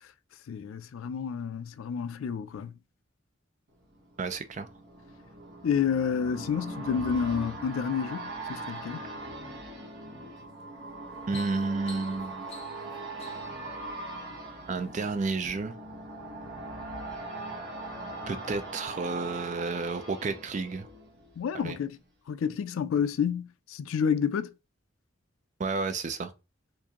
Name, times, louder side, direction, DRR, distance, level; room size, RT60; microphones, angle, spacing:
voice 1, 0.5-2.7 5.6-9.0 21.4-22.0 22.3-24.5, left 7 dB, 80° left, 0.3 m, -29 dB
sound 1, 3.8-21.6 22.0-22.1, right 2 dB, 55° right, 1.0 m, -41 dB
voice 2, 4.2-4.7 11.3-12.4 14.7-15.7 18.3-20.9 21.5-21.8 25.6-26.3, right 3 dB, 35° right, 0.4 m, -31 dB
sound 2, 10.4-10.6 11.0-13.6 14.4-15.0 15.4-15.5, left 3 dB, 30° left, 0.9 m, -49 dB
4.5 x 2.5 x 2.9 m
head